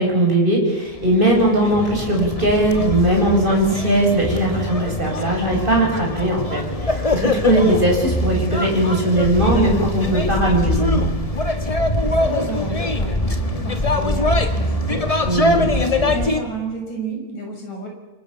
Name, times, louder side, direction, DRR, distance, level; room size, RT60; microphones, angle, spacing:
voice 1, 0.0-6.6 7.1-11.0 15.3-15.7, right 1 dB, 15° right, -1 dB, 7.9 m, -19 dB
sound 1, 0.9-16.4, left 1 dB, 20° left, 0.9 m, -23 dB
voice 2, 12.0-17.9, right 2 dB, 70° left, 1 dB, 7.8 m, -31 dB
28.5 x 25.0 x 7.1 m, 1.1 s
omnidirectional pair, 3.4 m